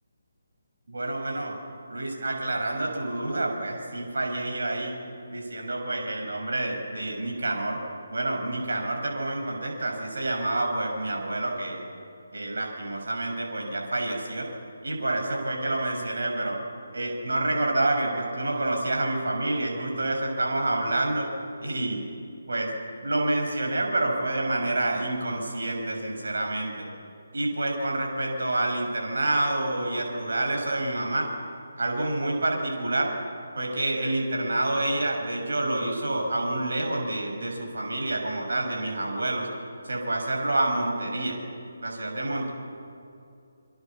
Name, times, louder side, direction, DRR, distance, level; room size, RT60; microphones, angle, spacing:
voice 1, 0.9-1.6 1.9-5.0 5.3-7.8 8.1-11.8 12.3-14.5 14.8-16.6 16.9-21.3 21.6-22.0 22.5-22.7 23.0-26.9 27.3-31.3 31.8-33.1 33.5-39.5 39.8-41.4 41.8-42.5, right 2 dB, 60° right, 1 dB, 6.5 m, -28 dB
27.0 x 25.0 x 7.2 m, 2.5 s
figure-of-eight pair, 145°, 0 cm